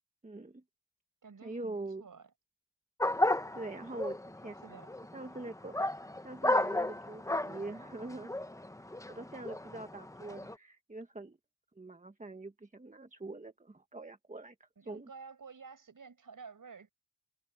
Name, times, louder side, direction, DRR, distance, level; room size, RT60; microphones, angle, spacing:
voice 1, 0.2-0.6 1.4-2.0 3.5-4.2 4.4-4.8 5.1-5.7 6.2-8.3 8.7-11.4 11.7-15.1, right 2 dB, 25° right, 1.2 m, -44 dB
voice 2, 1.2-2.3 4.6-4.9 14.8-16.9, right 5 dB, 75° right, 5.6 m, -51 dB
sound 1, 3.0-10.6, left 1 dB, 10° left, 0.8 m, -34 dB
wide cardioid pair, 110°, 32 cm